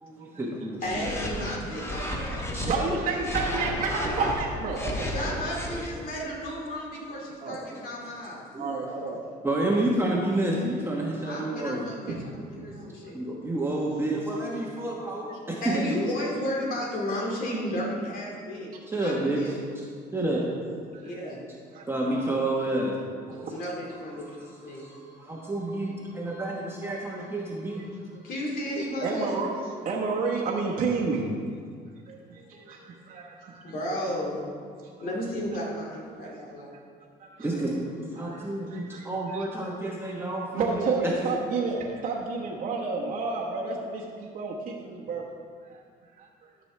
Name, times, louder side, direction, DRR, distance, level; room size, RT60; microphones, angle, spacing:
voice 1, 0.0-1.1 1.6-2.2 2.5-2.7 5.5-6.1 7.7-7.8 8.5-8.7 9.4-11.9 13.1-15.9 18.9-19.8 20.1-20.4 21.9-22.9 24.5-27.9 37.4-41.1, right 1 dB, 15° right, -3 dB, 1.1 m, -30 dB
voice 2, 0.8-2.7 3.0-3.1 5.1-8.4 11.2-13.2 15.6-18.7 19.0-19.7 21.0-21.5 23.5-24.4 24.6-24.9 28.2-29.4 33.6-34.4 35.0-36.7, left 1 dB, 55° left, -3 dB, 2.4 m, -33 dB
sound 1, 0.8-2.7 3.2-5.9, equal, 15° left, 1.2 m, -32 dB
voice 3, 2.6-5.1 7.4-7.6 8.6-9.2 12.1-12.3 12.5-12.9 20.9-21.1 21.7-21.8 22.1-22.2 23.3-23.6 27.7-27.9 29.0-29.5 29.8-31.3 32.1-33.6 35.0-35.1 36.2-36.4 37.2-37.5 38.2-39.4 40.5-45.2 45.7-45.8 46.2-46.3, right 4 dB, 55° right, -4 dB, 1.1 m, -31 dB
12.5 x 6.2 x 3.3 m, 2.1 s
cardioid pair, 110°, 17 cm